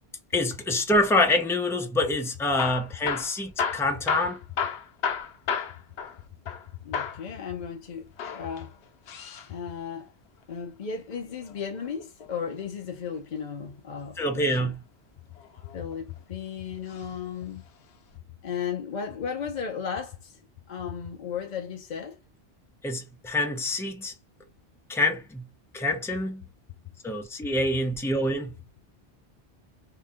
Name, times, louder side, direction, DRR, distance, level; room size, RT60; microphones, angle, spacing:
voice 1, 0.3-4.4 14.2-14.8 22.8-24.1 24.9-25.5 25.7-26.4 27.0-28.5, left 1 dB, 5° left, 0.4 m, -26 dB
Hammer / Drill, 2.4-6.7 6.9-7.3 8.1-9.5 11.2-12.5 14.2-14.6 15.4-16.2 16.9-17.1 17.4-17.5 18.1-18.2, left 6 dB, 80° left, 0.9 m, -33 dB
voice 2, 6.8-8.7 9.5-10.1 10.5-14.7 15.7-17.6 18.4-20.4 20.7-22.2, left 7 dB, 50° left, 0.6 m, -35 dB
2.8 x 2.6 x 3.6 m
omnidirectional pair, 1.1 m